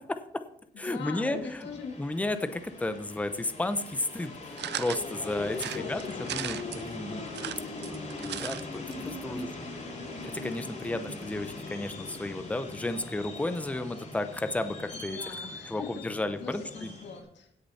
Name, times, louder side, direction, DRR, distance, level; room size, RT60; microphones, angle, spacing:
voice 1, 0.1-0.4 0.8-1.7 2.0-6.0 6.3-7.2 8.2-9.5 10.2-15.2 15.7-16.9, left 2 dB, 10° left, 10 dB, 0.7 m, -33 dB
voice 2, 0.7-2.0 5.7-6.3 9.2-9.6 14.9-16.0 16.4-17.5, left 5 dB, 90° left, 3 dB, 2.0 m, -42 dB
sound 1, 1.3-17.2, left 2 dB, 40° left, 2.8 m, -41 dB
sound 2, 4.6-5.0 5.5-6.8 7.3-8.6 8.9-9.0 9.2-9.3, right 11 dB, 75° right, 0.5 m, -37 dB
17.0 x 6.7 x 4.2 m, 0.73 s
wide cardioid pair, 170°, 18 cm